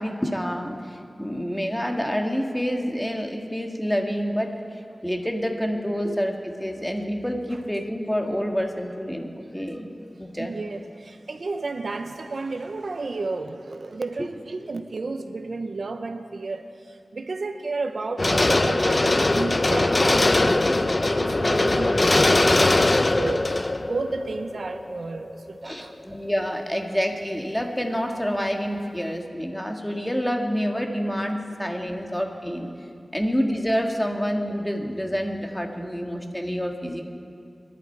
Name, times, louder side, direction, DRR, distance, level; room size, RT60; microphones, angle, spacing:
voice 1, 0.0-4.5 5.0-9.9 10.2-10.6 14.2-14.3 25.6-32.7 33.1-37.0, equal, 10° left, 2 dB, 1.9 m, -28 dB
voice 2, 10.4-25.9 32.0-32.2, right 3 dB, 75° right, 7 dB, 0.8 m, -32 dB
sound 1, 18.2-25.3 25.6-25.7, left 2 dB, 40° left, 0.6 m, -21 dB
25.5 x 11.0 x 4.7 m, 2.4 s
cardioid pair, 50°, 0 cm